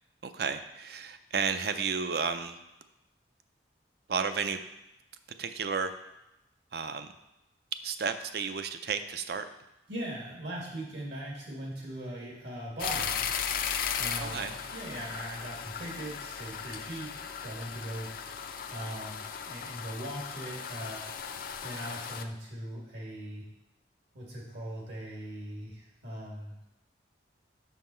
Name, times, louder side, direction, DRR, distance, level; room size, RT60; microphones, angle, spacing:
voice 1, 0.2-2.6 4.1-4.6 5.4-5.9 6.7-7.1 7.8-9.4 14.2-14.5, right 5 dB, 60° right, 10 dB, 0.5 m, -32 dB
voice 2, 9.9-13.3 14.0-18.1 18.7-21.0 21.6-23.5 24.1-26.7, right 1 dB, 75° right, -3 dB, 2.2 m, -40 dB
sound 1, 12.8-22.2, left 7 dB, 50° left, 0.4 m, -36 dB
6.2 x 5.7 x 4.4 m, 0.93 s
head